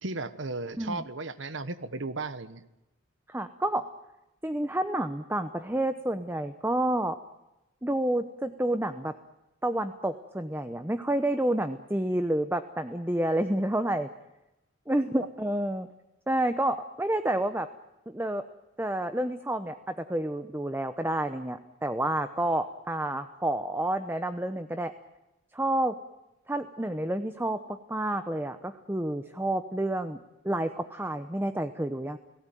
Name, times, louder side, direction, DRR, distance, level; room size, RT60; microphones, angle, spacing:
voice 1, 0.0-2.6, right 3 dB, 65° right, 13 dB, 1.2 m, -35 dB
voice 2, 3.3-3.8 4.4-7.2 7.8-9.1 9.6-14.1 14.9-15.9 16.3-17.7 18.1-18.4 18.8-24.9 25.5-25.9 26.5-30.2 30.4-32.2, right 1 dB, 10° right, 9 dB, 0.8 m, -29 dB
30.0 x 17.5 x 9.2 m, 0.98 s
head